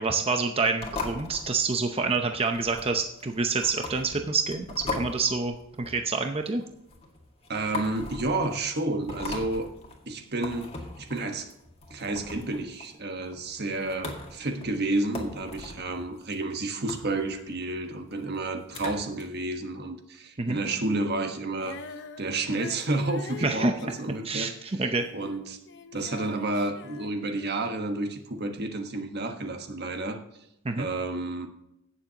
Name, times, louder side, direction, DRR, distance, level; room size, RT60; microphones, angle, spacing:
voice 1, 0.0-6.6 20.4-20.6 23.4-23.7 24.2-24.5 24.8-25.1 30.6-30.9, right 4 dB, 30° right, 5 dB, 0.7 m, -27 dB
sound 1, 0.8-19.2, left 3 dB, 30° left, 1.9 m, -40 dB
voice 2, 7.5-9.7 10.0-10.7 11.0-11.5 11.9-21.8 22.2-24.8 25.1-25.6 25.9-30.2 30.8-31.5, right 2 dB, 50° right, 5 dB, 1.3 m, -30 dB
Female singing, 21.5-27.9 28.6-28.7, left 4 dB, 55° left, 0.8 m, -44 dB
17.5 x 7.1 x 2.9 m, 0.83 s
head